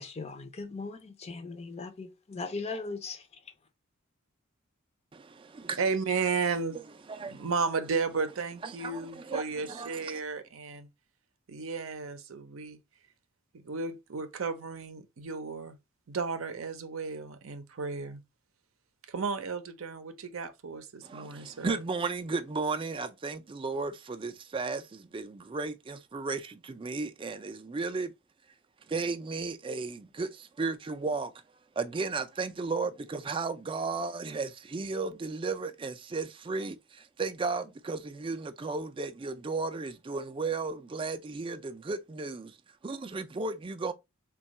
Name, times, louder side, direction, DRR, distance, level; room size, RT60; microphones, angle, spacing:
voice 1, 0.0-3.5, left 3 dB, 30° left, 0.5 m, -39 dB
voice 2, 5.1-5.8 7.1-7.5 8.6-10.2 21.0-28.1 28.9-31.3 31.8-42.6 42.8-43.9, right 4 dB, 25° right, 0.4 m, -34 dB
voice 3, 5.8-6.8 7.3-10.9 11.5-12.8 13.5-15.8 16.1-18.2 19.1-21.8, right 4 dB, 70° right, 0.6 m, -33 dB
3.5 x 2.3 x 4.0 m
head